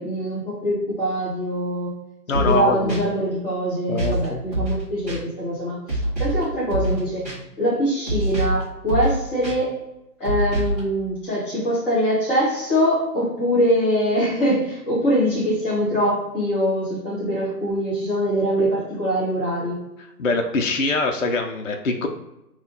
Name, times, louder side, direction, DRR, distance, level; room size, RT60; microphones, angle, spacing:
voice 1, 0.0-1.9 2.4-7.3 7.6-9.8 10.2-19.8, equal, 5° left, -7 dB, 1.0 m, -23 dB
voice 2, 2.3-3.0 3.9-4.4 20.2-22.1, left 3 dB, 50° left, 3 dB, 0.5 m, -23 dB
sound 1, 2.3-2.6 2.9-3.0 4.0-4.2 4.5-4.8 5.1-5.2 5.9-6.4 6.7-7.0 7.2-7.4 8.1-8.6 8.9-9.1 9.4-9.5 10.2-10.8, right 1 dB, 10° right, 1.1 m, -24 dB
3.7 x 2.3 x 4.0 m, 0.90 s
hypercardioid pair, 170°, 50 cm